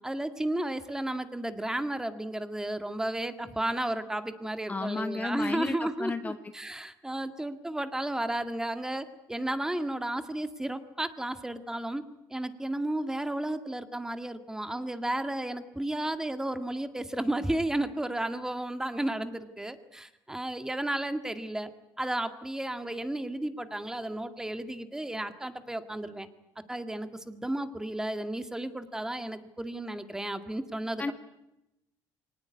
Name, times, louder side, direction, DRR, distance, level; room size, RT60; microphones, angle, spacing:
voice 1, 0.0-12.0 12.3-21.7 22.0-26.3 26.7-31.1, right 1 dB, 5° right, 9 dB, 1.9 m, -33 dB
voice 2, 4.7-6.4 31.0-31.1, left 3 dB, 20° left, 9 dB, 1.2 m, -32 dB
23.5 x 19.0 x 9.5 m, 0.92 s
cardioid pair, 105°, 8 cm